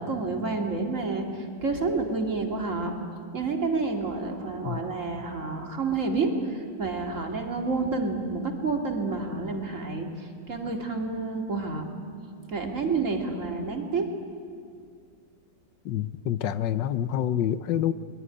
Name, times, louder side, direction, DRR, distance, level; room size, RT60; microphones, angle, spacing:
voice 1, 0.0-2.9 3.3-11.9 12.5-14.1, right 3 dB, 45° right, 2 dB, 2.7 m, -29 dB
voice 2, 15.8-17.9, left 10 dB, 90° left, 13 dB, 1.5 m, -27 dB
22.5 x 22.0 x 9.9 m, 2.2 s
omnidirectional pair, 1.9 m